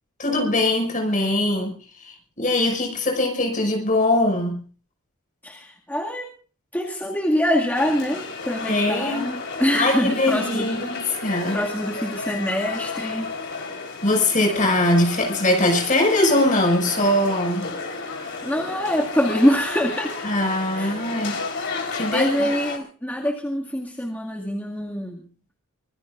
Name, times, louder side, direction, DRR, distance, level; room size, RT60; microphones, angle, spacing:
voice 1, 0.2-1.8 2.0-4.7 8.7-9.3 9.7-11.6 14.0-17.7 20.2-21.4 21.9-22.3, left 1 dB, 35° left, 6.0 m, -21 dB
voice 2, 5.4-6.3 6.7-10.9 11.2-13.3 18.4-20.2 20.8-21.0 22.1-25.3, equal, 10° left, 2.2 m, -25 dB
sound 1, 7.7-22.8, left 4 dB, 55° left, 4.1 m, -32 dB
25.0 x 20.5 x 2.6 m
head